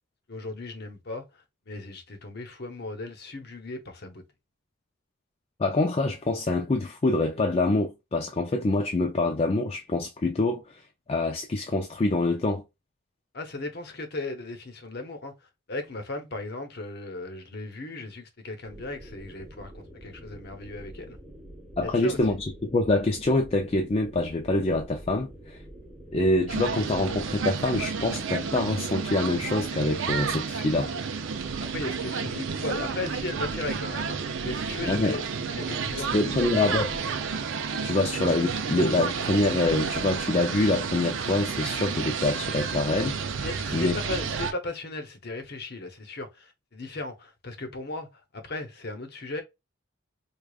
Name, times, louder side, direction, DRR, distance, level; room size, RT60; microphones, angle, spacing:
voice 1, 0.3-4.2 13.3-21.2 21.8-22.4 31.7-35.2 35.5-36.5 43.4-49.4, left 2 dB, 50° left, 0.9 m, -37 dB
voice 2, 5.6-10.8 11.1-12.6 21.8-25.6 26.1-30.9 34.9-35.2 36.1-37.0 37.8-43.2 43.7-44.0, left 2 dB, 30° left, 0.4 m, -25 dB
sound 1, 18.7-27.8, right 1 dB, 5° right, 1.2 m, -46 dB
sound 2, 26.5-44.5, right 5 dB, 65° right, 0.5 m, -31 dB
4.8 x 2.3 x 2.3 m
head